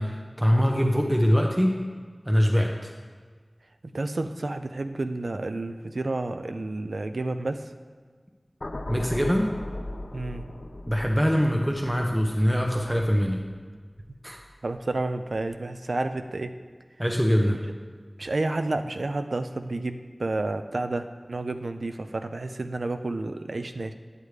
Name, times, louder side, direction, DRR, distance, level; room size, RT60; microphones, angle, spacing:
voice 1, 0.0-1.8 2.2-2.9 8.9-9.5 10.9-13.4 14.2-14.4 17.0-17.6, equal, 10° right, 1 dB, 0.7 m, -23 dB
voice 2, 3.9-7.7 10.1-10.4 14.6-16.6 17.5-17.6 18.2-23.9, right 2 dB, 80° right, 8 dB, 0.4 m, -30 dB
sound 1, 8.6-14.9 15.3-15.5, left 1 dB, 55° left, 0.4 m, -39 dB
9.0 x 8.1 x 3.3 m, 1.5 s
wide cardioid pair, 55°, 0 cm